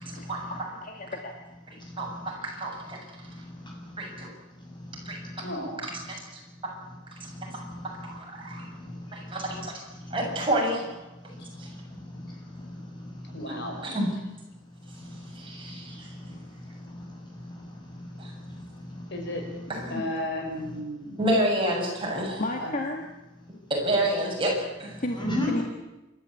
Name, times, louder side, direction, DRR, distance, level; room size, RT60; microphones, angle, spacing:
voice 1, 0.0-1.3 12.6-12.7 22.4-23.0 25.0-25.2 25.5-25.6, left 1 dB, 45° left, 2 dB, 2.1 m, -33 dB
voice 2, 2.0-3.0 4.0-4.3 5.1-5.2 7.5-7.6 8.0-8.6 9.1-9.7 10.1-10.8 11.6-11.7 13.5-13.6 13.8-14.1 15.4-16.1 18.2-18.3 19.7-20.0 21.2-22.4 23.7-25.0, right 1 dB, 25° right, -1 dB, 7.3 m, -28 dB
voice 3, 3.2-3.9 4.8-5.4 7.3-7.8 8.5-9.3 10.0-10.2 11.3-13.3 15.0-19.1 25.2-25.6, left 1 dB, 25° left, 0 dB, 7.2 m, -38 dB
voice 4, 5.4-5.8 11.4-11.5 13.3-13.9 19.1-19.5 19.9-21.3 22.6-22.8, left 1 dB, 60° left, 3 dB, 5.4 m, -34 dB
28.5 x 13.0 x 8.6 m, 1.0 s
head